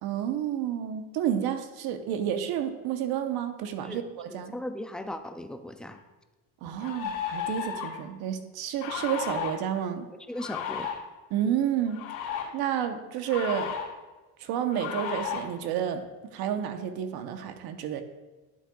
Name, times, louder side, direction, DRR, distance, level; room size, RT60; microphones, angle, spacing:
voice 1, 0.0-4.6 6.6-10.1 11.3-12.1 12.5-13.8 14.4-18.0, right 9 dB, 70° right, 7 dB, 1.0 m, -30 dB
voice 2, 4.3-6.0 10.3-10.9, left 1 dB, ahead, 7 dB, 0.3 m, -37 dB
sound 1, 5.9-6.0 6.8-8.0 8.8-9.5 10.3-11.0 11.9-12.4 13.3-13.9 14.7-15.4, left 8 dB, 80° left, 2.9 m, -33 dB
11.5 x 8.5 x 2.4 m, 1.2 s
cardioid pair, 130°, 39 cm